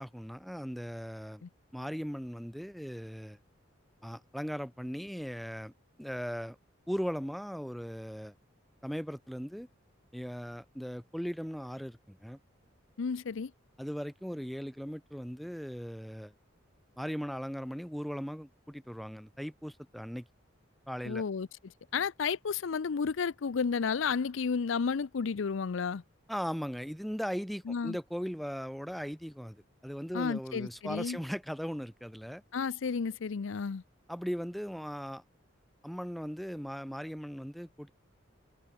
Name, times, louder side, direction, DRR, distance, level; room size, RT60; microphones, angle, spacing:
voice 1, 0.0-1.4 1.7-3.4 4.0-5.7 6.0-6.6 6.9-8.3 8.8-9.7 10.1-12.4 13.8-16.3 17.0-20.3 20.9-21.2 26.3-32.4 34.1-35.2 35.8-37.9, equal, ahead, 1.0 m, -38 dB
voice 2, 13.0-13.5 21.0-21.5 21.9-26.0 27.7-28.0 30.1-31.2 32.5-33.8, left 5 dB, 75° left, 0.5 m, -32 dB
head